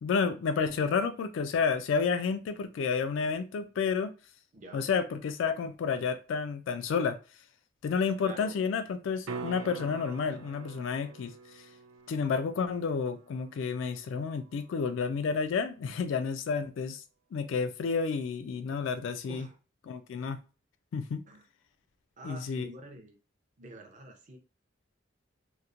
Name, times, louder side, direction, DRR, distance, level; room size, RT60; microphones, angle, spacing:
voice 1, 0.0-4.1 4.7-7.2 7.8-11.3 12.1-17.0 17.3-19.5 19.9-20.4 20.9-21.2 22.2-22.7, left 5 dB, 70° left, 0.3 m, -30 dB
voice 2, 4.5-4.9 8.2-8.6 19.3-19.6 21.3-21.5 22.2-23.2 23.6-24.4, right 1 dB, 40° right, 0.6 m, -47 dB
sound 1, 9.2-15.3 20.0-20.1, right 5 dB, 90° right, 0.4 m, -46 dB
2.9 x 2.0 x 2.4 m
head